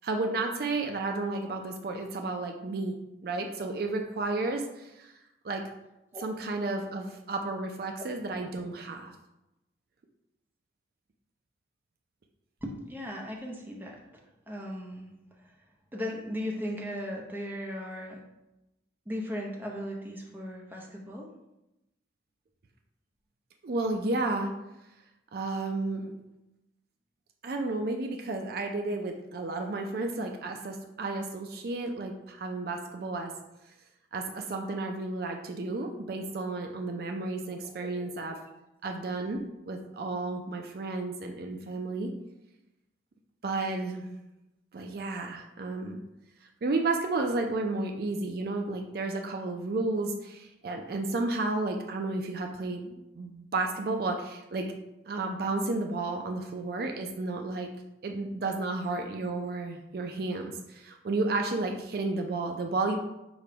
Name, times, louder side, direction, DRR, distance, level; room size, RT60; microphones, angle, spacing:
voice 1, 0.0-3.0 3.2-5.1 5.4-5.6 6.2-9.1 23.6-24.6 25.3-26.1 27.4-33.3 34.1-38.4 38.8-42.1 43.4-44.1 44.7-46.0 46.4-54.7 55.1-57.7 58.0-63.0, right 3 dB, 55° right, 4 dB, 0.4 m, -32 dB
voice 2, 12.6-14.0 14.5-15.1 15.4-15.5 15.9-18.2 19.1-21.3 37.6-38.1, equal, 10° right, -1 dB, 0.6 m, -37 dB
5.0 x 2.2 x 4.9 m, 0.93 s
head